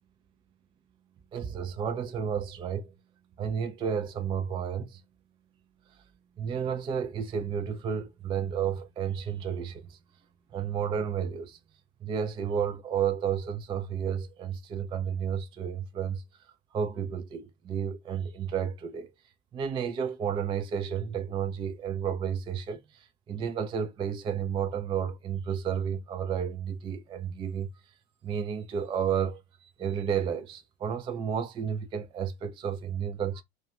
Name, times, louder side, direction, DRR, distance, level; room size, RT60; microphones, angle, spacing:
voice 1, 1.3-2.9 3.4-5.0 6.4-10.0 10.5-11.6 12.0-16.2 16.7-19.1 19.5-27.7 28.2-33.4, right 7 dB, 15° right, 0.3 m, -32 dB
2.3 x 2.3 x 2.8 m
hypercardioid pair, 80°, 32 cm